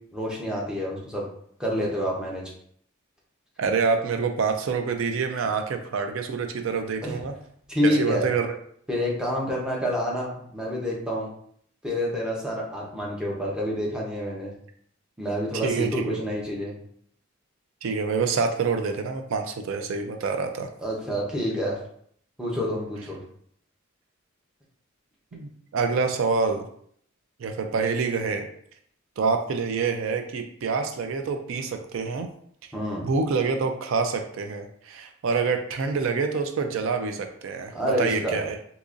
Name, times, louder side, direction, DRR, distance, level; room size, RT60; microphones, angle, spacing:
voice 1, 0.1-1.3 1.6-2.4 7.0-7.2 7.7-8.3 8.9-11.3 11.8-14.5 15.2-16.7 20.8-21.8 22.4-23.2 32.7-33.1 37.7-38.4, equal, 5° right, -4 dB, 0.7 m, -28 dB
voice 2, 3.6-7.3 7.8-8.6 15.6-16.2 17.8-20.7 25.3-26.6 27.4-28.5 29.2-32.3 33.0-38.5, right 5 dB, 70° right, 6 dB, 0.4 m, -26 dB
3.8 x 2.9 x 2.5 m, 0.64 s
head